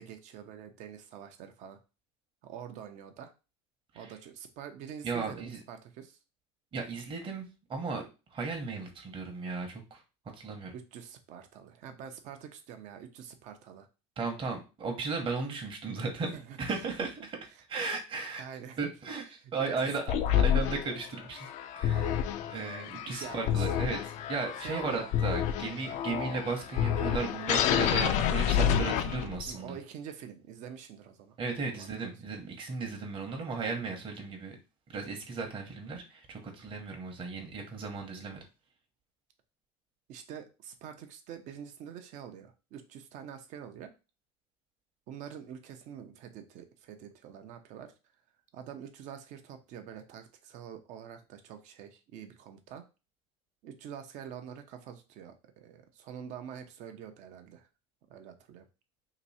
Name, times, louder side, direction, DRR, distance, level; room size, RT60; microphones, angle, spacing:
voice 1, 0.0-1.8 2.4-3.3 3.9-6.2 10.7-13.9 16.3-16.6 17.5-17.6 18.4-18.9 19.3-20.5 23.0-23.7 24.6-25.2 26.2-26.3 29.5-31.4 31.7-32.1 40.1-43.9 45.1-47.9 48.5-52.9 53.6-57.7 58.1-58.6, right 8 dB, 60° right, 7 dB, 0.7 m, -46 dB
voice 2, 5.0-5.6 6.7-7.4 7.7-8.0 8.3-10.0 10.4-10.7 14.2-16.3 16.6-17.1 17.7-18.4 18.8-19.2 19.5-21.5 21.8-22.1 22.5-29.7 31.4-34.6 34.9-38.4, right 4 dB, 35° right, 2 dB, 1.0 m, -35 dB
sound 1, 20.1-29.5, left 9 dB, 55° left, 0.5 m, -29 dB
3.0 x 2.6 x 4.1 m, 0.31 s
supercardioid pair, 95°, 14 cm